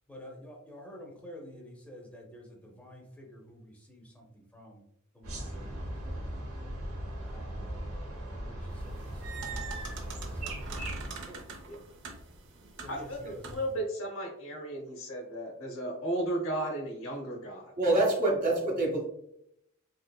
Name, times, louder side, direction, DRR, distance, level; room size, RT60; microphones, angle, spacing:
voice 1, 0.1-4.2 4.5-4.8 5.2-6.3 7.2-7.9 8.3-8.6 8.8-9.0 9.3-10.5 11.3-11.4 12.8-13.4, equal, 5° left, 0 dB, 0.7 m, -49 dB
sound 1, 5.2-11.1, right 1 dB, 75° right, 0.9 m, -38 dB
sound 2, 8.8-13.8, right 4 dB, 60° right, 0.6 m, -44 dB
voice 2, 12.9-17.7 18.2-18.4, right 1 dB, 65° left, 2 dB, 0.9 m, -35 dB
voice 3, 17.8-19.1, right 2 dB, 40° right, -1 dB, 1.0 m, -26 dB
3.3 x 3.1 x 2.3 m, 0.76 s
head